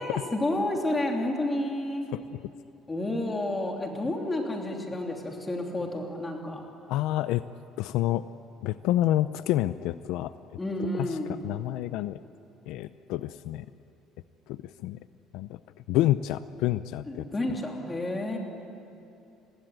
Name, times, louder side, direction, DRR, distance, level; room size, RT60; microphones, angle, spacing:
voice 1, 0.0-2.1 2.9-6.6 10.6-11.4 17.1-18.4, left 1 dB, 15° left, 1 dB, 3.1 m, -30 dB
voice 2, 6.9-7.4 7.8-8.2 8.6-10.3 11.0-11.2 11.4-12.2 12.7-13.7 14.5-15.0 15.3-15.6 15.9-17.3, left 14 dB, 70° left, 13 dB, 0.6 m, -28 dB
30.0 x 21.0 x 9.1 m, 2.7 s
cardioid pair, 175°, 0 cm